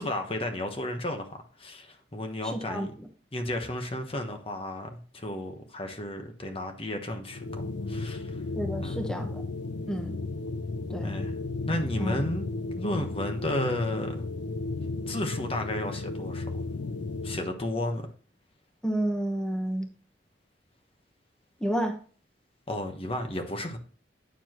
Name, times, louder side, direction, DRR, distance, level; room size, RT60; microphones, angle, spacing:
voice 1, 0.0-2.9 3.3-7.6 7.9-8.4 8.8-9.1 11.0-11.3 11.7-12.5 12.8-14.2 15.1-16.8 17.2-18.1 22.7-23.8, left 1 dB, 30° left, 1.1 m, -33 dB
voice 2, 2.4-3.1 8.5-9.4 9.9-10.2 10.9-11.2 12.0-12.1 18.8-19.9 21.6-22.0, right 1 dB, 5° left, 1.1 m, -30 dB
sound 1, 7.3-17.5, left 3 dB, 85° left, 0.6 m, -34 dB
9.3 x 7.1 x 3.0 m
head